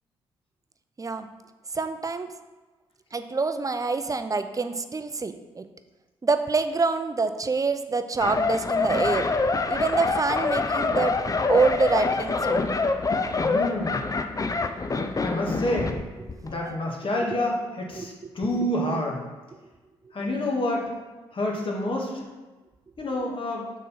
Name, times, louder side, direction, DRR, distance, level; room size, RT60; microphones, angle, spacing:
voice 1, 1.7-2.3 3.1-5.6 6.2-9.3 9.7-11.1 11.5-12.7 16.4-16.8 18.0-18.3, right 4 dB, 25° right, 9 dB, 0.6 m, -26 dB
sound 1, 8.2-16.0 16.3-16.5, left 3 dB, 25° left, 0.6 m, -25 dB
voice 2, 13.4-14.0 15.2-15.9 16.4-19.2 20.1-20.8 21.3-22.1 23.0-23.7, left 1 dB, 40° left, -1 dB, 1.8 m, -28 dB
6.4 x 3.8 x 5.7 m, 1.2 s
hypercardioid pair, 40°, 13 cm